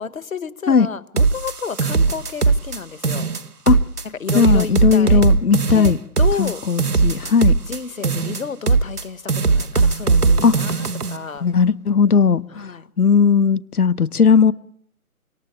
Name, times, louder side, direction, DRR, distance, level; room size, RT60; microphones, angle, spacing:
voice 1, 0.0-3.3 4.2-5.2 5.7-6.6 7.7-11.5 12.5-12.8, left 6 dB, 65° left, 1.5 m, -31 dB
sound 1, 1.2-2.8 3.0-4.0 4.3-9.0 9.3-11.2, right 4 dB, 90° right, 1.4 m, -19 dB
voice 2, 4.3-6.0 6.4-7.5 10.4-10.5 11.4-12.7 13.0-14.5, left 6 dB, 80° left, 1.0 m, -16 dB
26.0 x 25.0 x 8.5 m
figure-of-eight pair, 150°, 44 cm